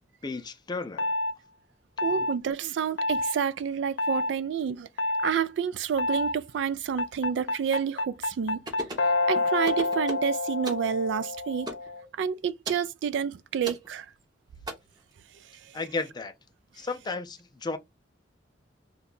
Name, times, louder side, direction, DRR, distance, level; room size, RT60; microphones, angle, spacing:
voice 1, 0.2-1.1 2.0-2.3 15.7-16.3 16.7-17.8, left 3 dB, 25° left, 0.4 m, -34 dB
sound 1, 1.0-1.3 2.0-2.4 3.0-3.4 4.0-4.3 5.0-5.3 6.0-6.4 7.0-12.1, left 2 dB, 90° left, 0.4 m, -28 dB
voice 2, 2.0-4.9 5.2-8.6 9.3-11.7 12.2-14.0, right 7 dB, 80° right, 0.3 m, -29 dB
sound 2, 8.7-9.1 9.6-10.3 10.6-10.9 11.7-11.9 12.6-12.9 13.6-13.9 14.7-14.8, right 1 dB, 25° right, 0.7 m, -36 dB
2.7 x 2.2 x 3.8 m
head